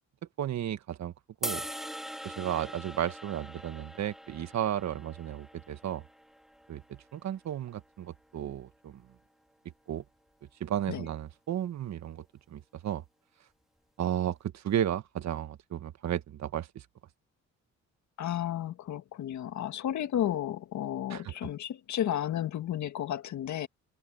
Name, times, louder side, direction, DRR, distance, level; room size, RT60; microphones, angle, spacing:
voice 1, 0.4-1.1 1.4-1.6 2.2-6.0 6.7-9.0 9.9-10.0 10.6-13.0 14.0-16.8 21.1-21.3, right 10 dB, 65° right, 1.5 m, -34 dB
sound 1, 1.4-7.7, equal, ahead, 2.6 m, -42 dB
voice 2, 18.2-23.7, left 11 dB, 70° left, 2.0 m, -32 dB
cardioid pair, 90°, 30 cm